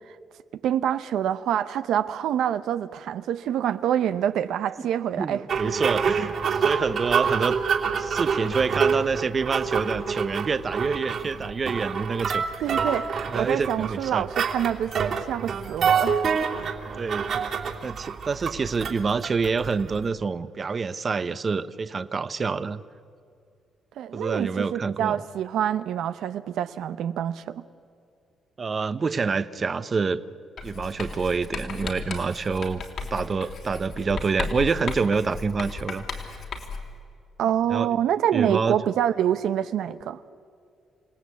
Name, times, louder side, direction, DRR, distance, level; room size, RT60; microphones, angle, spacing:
voice 1, 0.6-5.7 12.6-16.2 24.0-27.6 37.4-40.2, right 10 dB, 80° right, 11 dB, 0.7 m, -26 dB
voice 2, 5.2-7.6 8.0-12.8 13.1-14.3 16.6-16.7 16.9-17.4 17.8-22.8 24.1-25.2 28.6-30.2 30.6-32.8 33.1-36.0 37.4-38.0 38.3-38.8, right 4 dB, 35° right, 13 dB, 0.9 m, -27 dB
sound 1, 5.5-20.1, right 6 dB, 60° right, 2.9 m, -27 dB
Writing, 30.6-37.0, left 4 dB, 60° left, 3.5 m, -35 dB
28.5 x 18.0 x 8.3 m, 2.4 s
cardioid pair, 110°, 0 cm